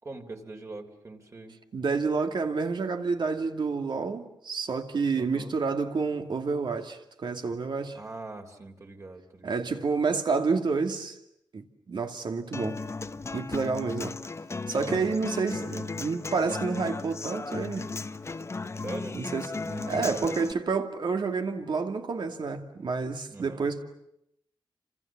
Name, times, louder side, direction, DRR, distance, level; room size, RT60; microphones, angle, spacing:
voice 1, 0.0-1.6 5.2-5.6 7.9-9.7 14.9-15.9 18.8-19.2 19.6-20.4 23.3-23.6, right 2 dB, 35° right, 3.4 m, -42 dB
voice 2, 1.7-8.0 9.4-11.2 11.5-12.8 13.3-14.1 14.7-17.9 19.1-19.6 19.9-23.8, right 4 dB, 65° right, 2.6 m, -29 dB
Human voice / Acoustic guitar, 12.5-20.5, left 3 dB, 35° left, 1.0 m, -36 dB
30.0 x 27.0 x 7.4 m
wide cardioid pair, 140°, 8 cm